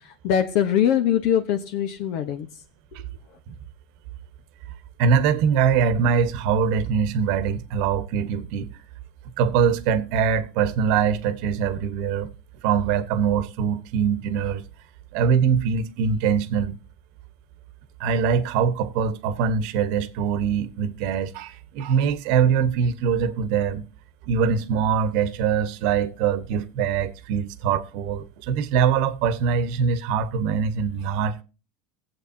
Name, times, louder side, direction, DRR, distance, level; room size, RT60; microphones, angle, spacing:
voice 1, 0.2-2.5, left 9 dB, 65° left, 1.0 m, -22 dB
voice 2, 5.0-8.7 9.4-12.3 12.6-14.6 15.1-16.8 18.0-23.9 24.3-31.4, right 7 dB, 65° right, 1.1 m, -23 dB
20.5 x 7.8 x 2.8 m
supercardioid pair, 135°, 0 cm